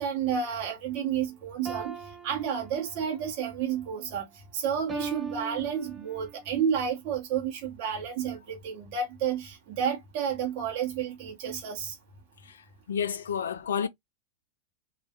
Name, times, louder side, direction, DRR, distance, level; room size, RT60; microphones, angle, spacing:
voice 1, 0.0-4.3 4.5-12.0, right 7 dB, 45° right, 0.9 m, -31 dB
sound 1, 1.7-3.2 4.9-6.4, right 4 dB, 15° right, 0.6 m, -39 dB
voice 2, 12.9-13.9, left 7 dB, 65° left, 0.3 m, -30 dB
3.1 x 2.4 x 2.7 m
figure-of-eight pair, 90°, 0 cm